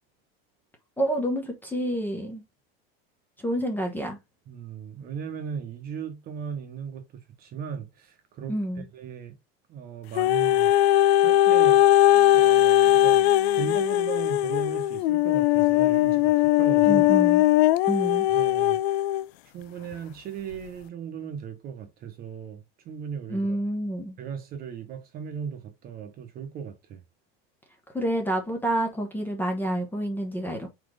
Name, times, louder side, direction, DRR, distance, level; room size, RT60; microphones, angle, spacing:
voice 1, 1.0-2.4 3.4-4.2 8.5-8.9 16.9-17.4 17.9-18.3 23.3-24.2 27.9-30.7, right 1 dB, 5° left, 0.9 m, -28 dB
voice 2, 4.5-7.0 7.4-8.5 8.9-9.3 9.7-10.7 11.2-11.8 12.3-13.3 13.5-17.2 18.3-18.8 19.4-23.5 24.2-27.0, right 7 dB, 30° right, 1.1 m, -37 dB
sound 1, 10.2-19.3 19.9-20.0, left 14 dB, 80° left, 0.5 m, -20 dB
4.5 x 4.3 x 4.9 m
supercardioid pair, 170°, 31 cm